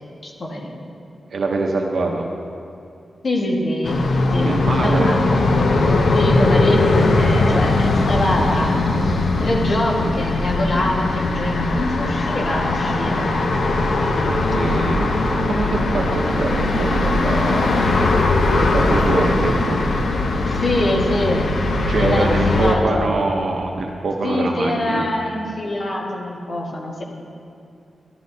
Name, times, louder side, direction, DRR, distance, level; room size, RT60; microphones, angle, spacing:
voice 1, 0.2-0.9 3.2-4.0 4.3-5.4 5.8-13.3 16.2-16.3 19.4-19.7 20.4-21.5 21.9-23.1 24.2-27.0, left 1 dB, 40° left, -2 dB, 1.5 m, -24 dB
voice 2, 1.3-2.3 4.4-5.1 14.3-15.1 15.4-17.9 18.7-19.8 21.9-25.1, right 3 dB, 60° right, 1 dB, 0.7 m, -23 dB
sound 1, 3.8-22.7, left 2 dB, 70° left, 0.8 m, -19 dB
14.5 x 11.5 x 2.7 m, 2.5 s
wide cardioid pair, 175°, 0 cm